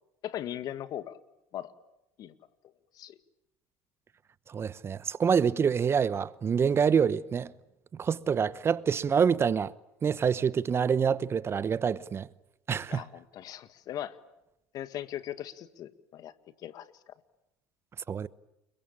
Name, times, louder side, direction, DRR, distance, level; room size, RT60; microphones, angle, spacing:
voice 1, 0.2-1.2 1.5-1.7 2.2-2.3 3.0-3.2 12.9-14.2 14.7-16.3 16.6-17.1, left 11 dB, 55° left, 1.9 m, -39 dB
voice 2, 4.5-7.5 8.0-9.7 10.0-12.3 12.7-13.0 18.1-18.3, right 7 dB, 30° right, 0.9 m, -26 dB
29.5 x 22.5 x 8.8 m
hypercardioid pair, 80°, 8 cm